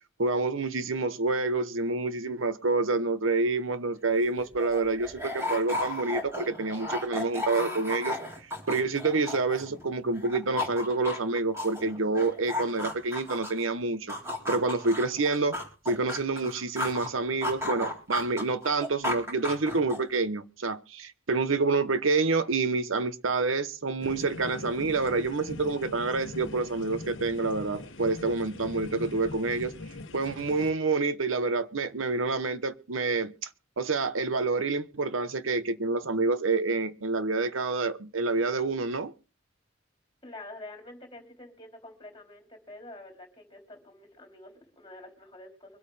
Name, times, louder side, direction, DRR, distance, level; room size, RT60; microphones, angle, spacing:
voice 1, 0.2-8.2 8.7-14.1 14.5-15.6 15.9-29.7 30.1-33.5 33.8-39.1, right 3 dB, 85° right, 1.0 m, -28 dB
sound 1, 4.0-4.1 4.3-9.9 10.2-13.7 14.1-17.1 17.4-20.2, left 1 dB, 15° right, 3.8 m, -34 dB
sound 2, 24.0-30.7, left 2 dB, 70° left, 1.0 m, -41 dB
voice 2, 40.2-45.8, left 2 dB, 25° left, 3.6 m, -47 dB
24.0 x 8.4 x 3.4 m
head